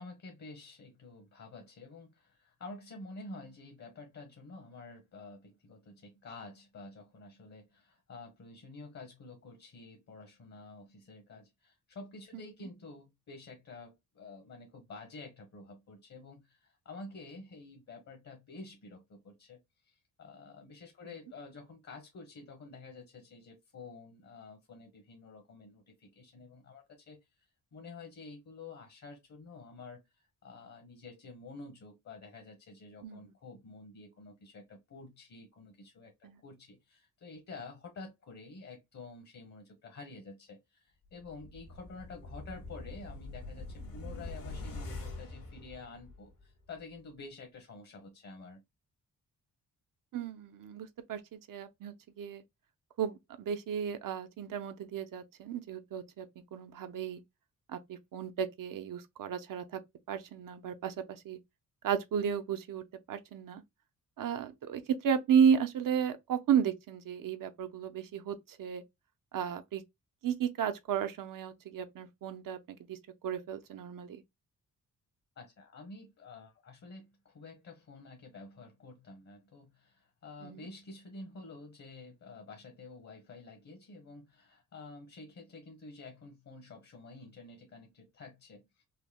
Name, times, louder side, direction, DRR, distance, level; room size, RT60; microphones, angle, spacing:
voice 1, 0.0-19.6 19.8-27.2 27.7-30.0 30.4-48.6 75.4-88.8, left 3 dB, 50° left, 1.2 m, -49 dB
sound 1, 41.2-46.4 46.8-46.9, left 2 dB, 70° left, 1.9 m, -44 dB
voice 2, 50.1-52.4 53.0-57.2 57.7-59.8 60.1-61.4 61.8-63.6 64.2-68.8 69.3-69.8 70.2-73.0 73.2-74.2 80.4-80.7, right 8 dB, 70° right, 0.7 m, -33 dB
5.7 x 2.1 x 2.2 m
wide cardioid pair, 180°, 34 cm